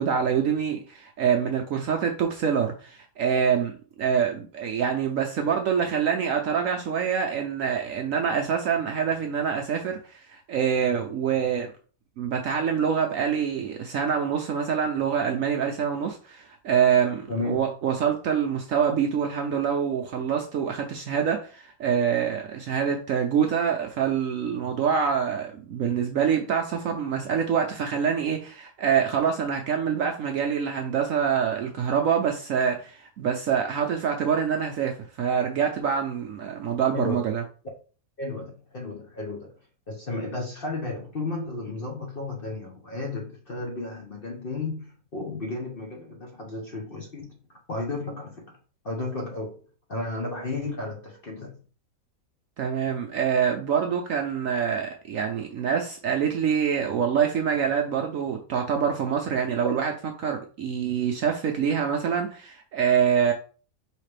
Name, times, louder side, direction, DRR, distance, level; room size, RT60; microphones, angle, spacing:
voice 1, 0.0-3.7 4.0-11.7 12.2-37.4 52.6-59.9 60.2-63.3, right 7 dB, 70° right, 0.8 m, -25 dB
voice 2, 17.3-17.7 36.8-37.2 38.2-39.5 39.9-47.4 47.7-48.5 48.8-49.6 49.9-51.6 57.6-57.7, left 2 dB, 45° left, 0.8 m, -33 dB
5.0 x 3.2 x 3.2 m
omnidirectional pair, 1.8 m